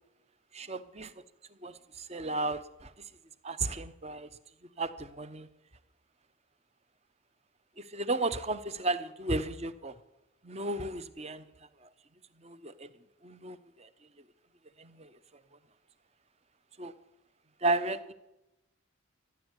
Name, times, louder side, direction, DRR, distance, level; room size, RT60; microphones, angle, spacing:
voice 1, 0.5-1.1 1.6-3.1 3.4-4.3 4.8-5.5 7.8-9.9 10.4-11.5 11.8-11.9 12.4-12.9 13.2-13.9 14.8-15.2 16.8-16.9 17.6-18.1, right 2 dB, 30° right, 13 dB, 0.8 m, -34 dB
15.0 x 10.5 x 8.2 m, 0.94 s
head